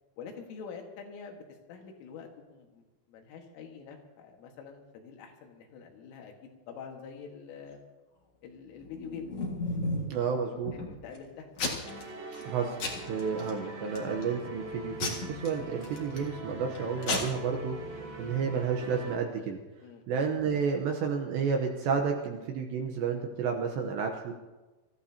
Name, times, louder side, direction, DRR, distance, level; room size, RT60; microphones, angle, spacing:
voice 1, 0.2-1.4 1.7-2.8 3.1-7.8 8.4-9.3 10.5-11.5 19.8-20.0, left 6 dB, 75° left, 3 dB, 4.1 m, -45 dB
Packing tape duct tape / Tearing, 8.8-10.2 10.7-11.2 11.6-12.0 12.3-12.5 12.8-13.5 14.0-14.3 15.0-16.3 16.7-16.8 17.0-17.2, left 3 dB, 55° left, 1.6 m, -33 dB
voice 2, 10.1-10.7 12.4-12.8 13.1-19.6 20.1-24.3, right 6 dB, 75° right, 3 dB, 2.8 m, -31 dB
sound 1, 11.8-19.2, right 2 dB, 55° right, 4.2 m, -42 dB
26.5 x 14.5 x 2.8 m, 1.2 s
omnidirectional pair, 5.8 m